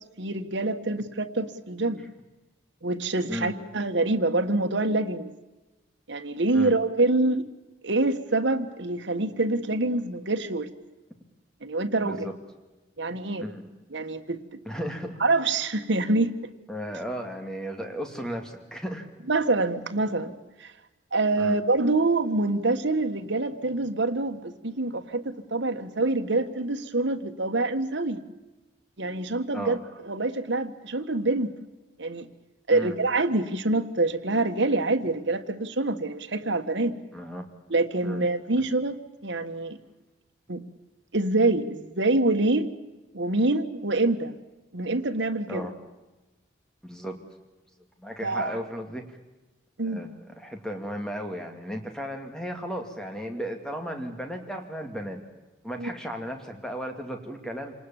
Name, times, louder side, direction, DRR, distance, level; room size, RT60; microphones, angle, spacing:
voice 1, 0.2-2.0 2.8-5.3 6.1-7.5 7.8-10.7 11.6-12.2 13.0-13.4 13.9-14.6 15.2-16.3 19.3-20.7 21.1-28.2 29.0-29.8 30.0-31.5 32.0-32.3 32.7-37.0 37.7-39.8 40.5-40.6 41.1-42.7 43.1-44.4 44.7-45.7 48.2-48.6 49.8-50.0 55.8-55.9, right 2 dB, 75° right, 6 dB, 1.5 m, -26 dB
voice 2, 12.0-12.3 13.4-13.6 14.6-15.1 16.7-19.1 21.4-21.6 29.5-29.8 32.7-33.0 37.1-37.5 38.0-38.2 38.6-38.7 45.5-45.7 46.8-47.2 48.0-49.2 49.8-55.2 55.6-57.7, equal, 5° left, 4 dB, 2.4 m, -35 dB
27.5 x 19.5 x 7.2 m, 1.1 s
head